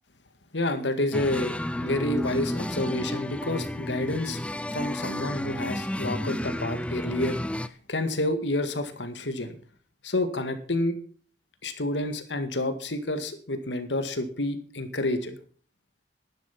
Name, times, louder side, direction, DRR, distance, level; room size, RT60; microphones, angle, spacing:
voice 1, 0.5-1.6 1.8-4.4 4.7-9.6 10.0-11.0 11.6-15.4, left 1 dB, 80° left, 9 dB, 2.0 m, -29 dB
sound 1, 1.1-7.7, left 1 dB, 5° left, 0.6 m, -31 dB
12.0 x 10.5 x 5.9 m, 0.42 s
head